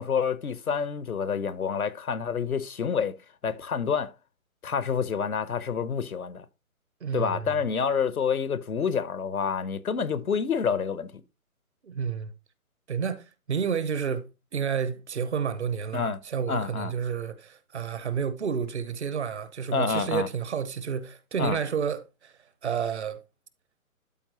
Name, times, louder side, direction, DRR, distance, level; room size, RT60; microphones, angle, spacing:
voice 1, 0.0-3.2 3.4-4.1 4.6-6.4 7.1-11.1 15.9-16.2 16.5-16.9 19.7-20.3 21.4-21.6, left 6 dB, 80° left, 0.8 m, -28 dB
voice 2, 7.0-7.6 11.8-12.3 12.9-14.3 14.5-22.3 22.6-23.2, right 7 dB, 50° right, 0.9 m, -30 dB
12.5 x 4.3 x 2.8 m
figure-of-eight pair, 140°, 43 cm